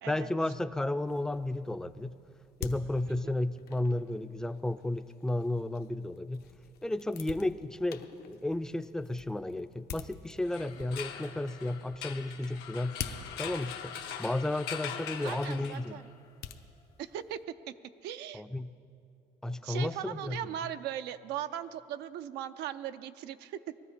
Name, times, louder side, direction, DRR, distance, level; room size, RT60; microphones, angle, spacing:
voice 1, 0.1-2.1 2.6-6.5 6.8-13.0 13.4-13.9 14.2-16.0 18.3-18.8 19.4-20.5, left 1 dB, 5° left, 11 dB, 0.4 m, -33 dB
sound 1, 1.0-17.4, left 8 dB, 70° left, 0.9 m, -48 dB
sound 2, 10.4-16.1, left 8 dB, 85° left, 1.2 m, -42 dB
voice 2, 15.2-16.1 17.0-17.4 17.7-17.8 18.0-18.4 19.6-23.6, right 11 dB, 85° right, 10 dB, 0.5 m, -39 dB
20.5 x 13.0 x 5.0 m, 2.4 s
cardioid pair, 110°, 17 cm